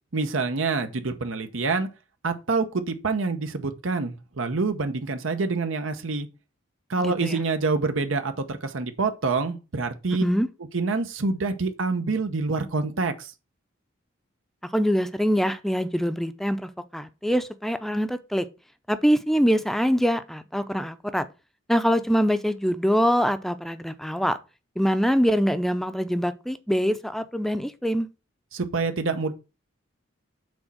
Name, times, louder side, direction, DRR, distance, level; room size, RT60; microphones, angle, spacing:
voice 1, 0.1-1.9 2.2-6.3 6.9-10.2 10.7-13.3 28.5-29.3, right 3 dB, 90° right, 0.9 m, -26 dB
voice 2, 7.0-7.4 10.2-10.5 14.7-18.5 18.9-21.3 21.7-24.4 24.8-28.1, equal, ahead, 0.5 m, -24 dB
6.3 x 4.2 x 6.1 m
head